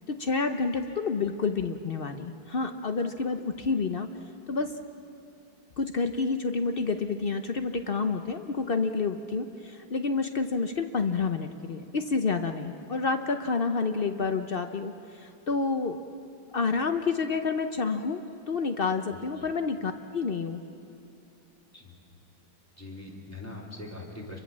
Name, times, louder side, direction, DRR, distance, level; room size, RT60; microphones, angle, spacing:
voice 1, 0.1-4.1 4.5-4.7 5.8-16.0 16.5-18.2 18.5-20.6, left 4 dB, 80° left, 7 dB, 0.5 m, -29 dB
voice 2, 19.1-19.5 21.7-22.0 22.8-24.4, left 2 dB, 5° left, -2 dB, 3.7 m, -42 dB
28.5 x 23.5 x 7.4 m, 2.9 s
omnidirectional pair, 2.2 m